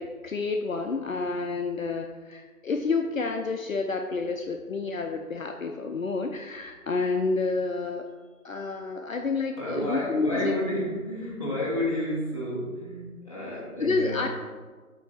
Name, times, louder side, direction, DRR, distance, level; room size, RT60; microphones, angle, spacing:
voice 1, 0.0-8.1 8.4-10.5 13.8-14.3, left 4 dB, 65° left, 4 dB, 0.5 m, -29 dB
voice 2, 9.6-14.3, left 1 dB, 25° left, -8 dB, 1.2 m, -30 dB
8.3 x 2.9 x 4.3 m, 1.4 s
figure-of-eight pair, 175°, 45 cm